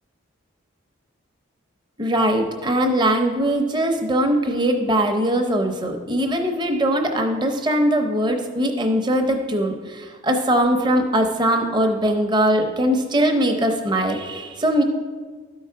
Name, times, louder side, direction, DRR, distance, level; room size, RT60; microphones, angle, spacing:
voice 1, 2.0-14.8, right 1 dB, 20° right, 4 dB, 0.7 m, -21 dB
12.5 x 4.7 x 4.6 m, 1.5 s
head